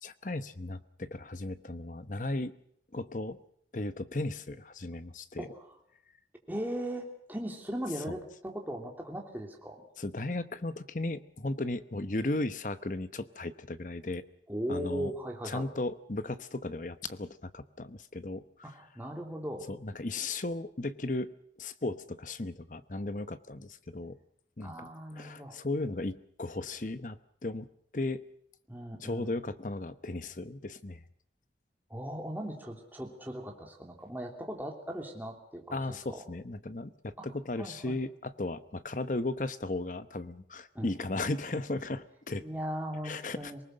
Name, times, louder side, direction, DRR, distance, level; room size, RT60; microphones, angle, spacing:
voice 1, 0.0-2.6 2.9-3.4 3.7-5.5 10.0-14.3 14.7-15.1 15.4-18.7 19.7-21.3 21.6-24.2 24.6-27.7 27.9-28.2 29.0-31.0 35.7-42.5 43.0-43.6, left 2 dB, 45° left, 12 dB, 0.9 m, -36 dB
voice 2, 5.4-5.7 6.5-9.8 14.5-15.7 18.6-19.7 24.6-25.6 28.7-29.3 31.9-36.2 37.2-37.3 37.6-38.0 40.7-40.9 42.4-43.6, equal, 10° right, 1 dB, 3.1 m, -38 dB
26.5 x 19.0 x 6.5 m, 0.67 s
head